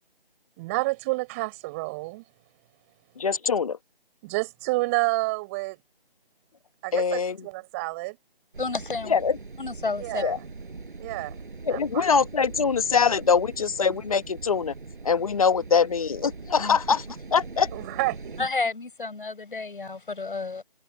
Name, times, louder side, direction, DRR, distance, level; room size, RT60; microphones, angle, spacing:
voice 1, 0.6-2.2 4.2-5.8 6.8-8.2 10.0-10.4 11.0-11.4 11.7-12.1 17.7-18.4, right 24 dB, 15° right, 5.5 m, -29 dB
voice 2, 3.2-3.8 6.9-7.4 9.0-9.4 10.2-10.4 11.6-14.7 15.0-17.7, left 6 dB, 35° left, 1.5 m, -23 dB
sound 1, 8.5-18.5, right 4 dB, 55° right, 5.5 m, -41 dB
voice 3, 8.6-9.1 9.6-10.2 16.6-16.8 18.4-20.6, left 3 dB, 60° left, 4.9 m, -31 dB
figure-of-eight pair, 160°, 30 cm